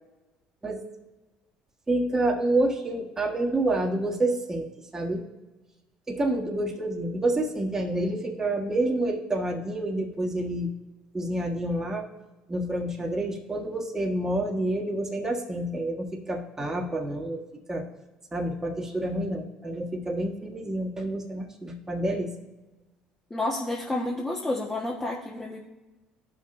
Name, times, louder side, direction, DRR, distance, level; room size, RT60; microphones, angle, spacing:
voice 1, 1.9-5.3 6.1-10.7 11.1-12.1 12.5-17.4 17.7-17.8 18.3-22.3, right 1 dB, 20° right, 1 dB, 1.5 m, -28 dB
voice 2, 23.3-25.6, left 2 dB, 15° left, -3 dB, 1.2 m, -30 dB
14.0 x 5.8 x 2.6 m, 1.1 s
hypercardioid pair, 70°, 3 cm